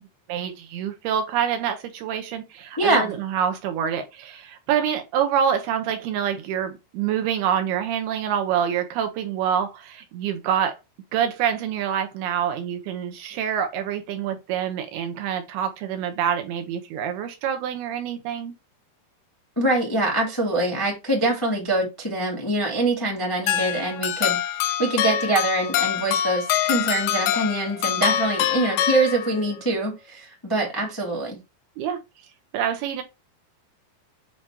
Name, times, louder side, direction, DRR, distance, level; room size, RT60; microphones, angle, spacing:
voice 1, 0.3-10.8 11.1-18.5 31.8-32.0 32.5-33.0, right 8 dB, 75° right, 2.7 m, -26 dB
voice 2, 2.8-3.1 19.5-31.4, right 2 dB, 10° left, 1.2 m, -24 dB
sound 1, 23.5-29.6, left 10 dB, 80° left, 2.3 m, -25 dB
8.7 x 2.9 x 4.6 m
omnidirectional pair, 4.8 m